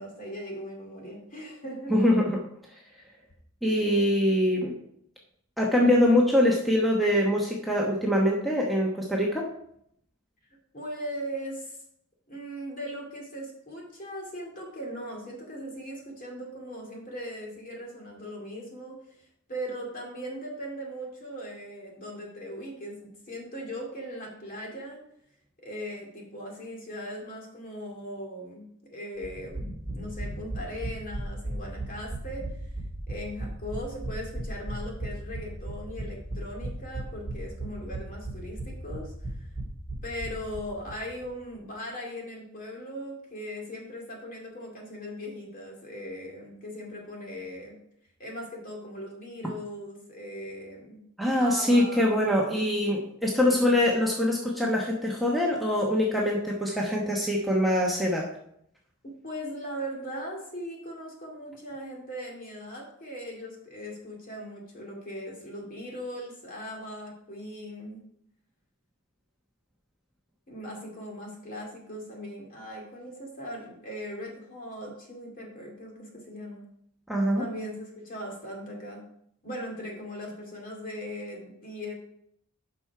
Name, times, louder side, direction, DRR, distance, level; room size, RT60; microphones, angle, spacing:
voice 1, 0.0-1.9 10.7-11.8 12.3-25.0 25.6-32.5 33.1-39.5 40.0-47.8 48.2-51.0 51.4-52.2 53.3-53.8 59.0-68.0 70.5-76.6 77.4-79.0 79.4-81.9, equal, 40° left, -1 dB, 2.5 m, -39 dB
voice 2, 1.9-2.4 3.6-4.7 5.6-9.5 51.2-58.3 77.1-77.4, left 1 dB, ahead, -3 dB, 1.0 m, -24 dB
sound 1, 29.2-41.0 41.2-41.3 41.5-41.6, right 1 dB, 15° left, 3.1 m, -36 dB
7.8 x 5.8 x 4.8 m, 0.71 s
head